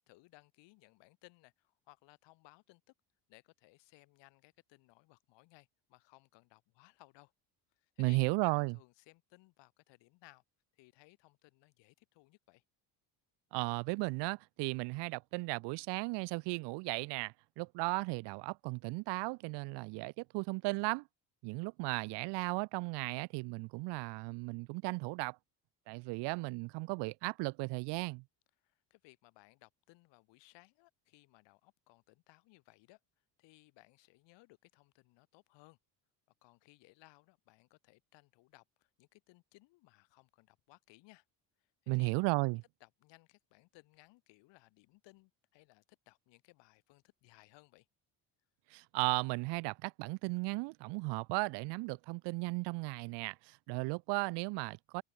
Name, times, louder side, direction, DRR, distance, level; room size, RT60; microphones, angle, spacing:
voice 1, 0.0-2.8 3.3-7.3 7.8-10.4 10.7-12.6 28.6-33.0 33.4-35.8 36.4-41.2 41.8-42.2 42.8-47.9, left 22 dB, 80° left, 5.5 m, -63 dB
voice 2, 8.0-8.8 13.5-21.1 21.4-25.4 25.9-28.2 41.9-42.6 48.7-55.0, right 26 dB, 70° right, 0.6 m, -35 dB
cardioid pair, 150°, 43 cm